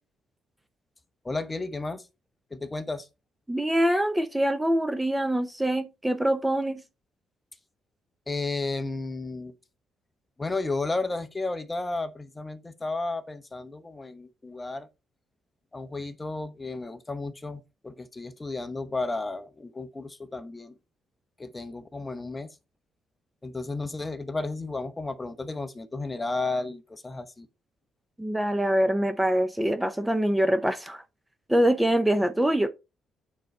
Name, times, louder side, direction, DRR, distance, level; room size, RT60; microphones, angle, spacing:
voice 1, 1.2-2.0 2.5-3.1 8.3-9.5 10.4-14.9 15.7-20.7 21.4-22.5 23.4-27.5, left 3 dB, 20° left, 1.0 m, -33 dB
voice 2, 3.5-6.8 28.2-31.0 31.5-32.7, right 1 dB, 10° right, 0.7 m, -24 dB
9.0 x 3.9 x 4.2 m
cardioid pair, 90°, 0 cm